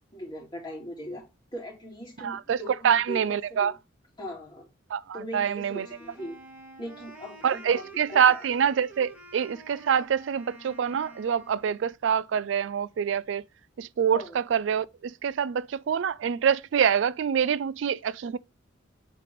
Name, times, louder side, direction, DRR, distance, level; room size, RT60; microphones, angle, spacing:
voice 1, 0.1-1.2 1.5-3.7 4.2-4.7 5.1-6.4 6.8-8.4 14.1-14.4, equal, 25° left, 2.3 m, -40 dB
voice 2, 2.2-3.7 4.9-5.9 7.4-13.4 13.8-18.4, right 8 dB, 75° right, 0.4 m, -26 dB
Wind instrument woodwind instrument, 5.7-11.9, right 2 dB, 10° right, 1.9 m, -48 dB
7.5 x 3.2 x 5.1 m
head